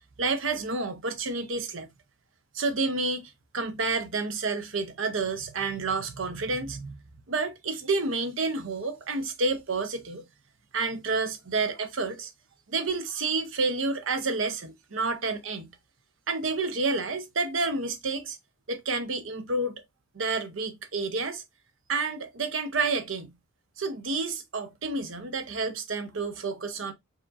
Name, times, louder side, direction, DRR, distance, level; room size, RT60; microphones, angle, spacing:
voice 1, 0.2-1.9 2.5-7.0 7.3-10.2 10.7-12.3 12.7-15.7 16.3-18.4 18.7-19.8 20.1-21.4 21.9-23.3 23.8-26.9, right 3 dB, 65° right, 0.8 m, -29 dB
4.6 x 2.9 x 2.5 m
head